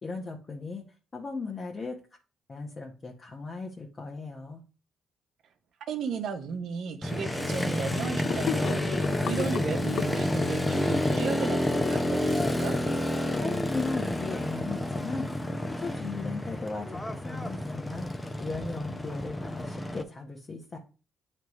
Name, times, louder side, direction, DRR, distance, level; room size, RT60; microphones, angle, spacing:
voice 1, 0.0-0.8 1.1-2.0 2.5-4.6 13.4-15.3 15.6-20.8, left 3 dB, 35° left, 1.1 m, -37 dB
voice 2, 5.9-12.8, right 5 dB, 70° right, 0.9 m, -35 dB
Motorcycle, 7.0-20.0, left 1 dB, 15° left, 0.7 m, -29 dB
Gurgling / Sink (filling or washing), 8.2-12.7, left 8 dB, 65° left, 0.4 m, -35 dB
9.3 x 3.3 x 3.1 m
cardioid pair, 90°, 0 cm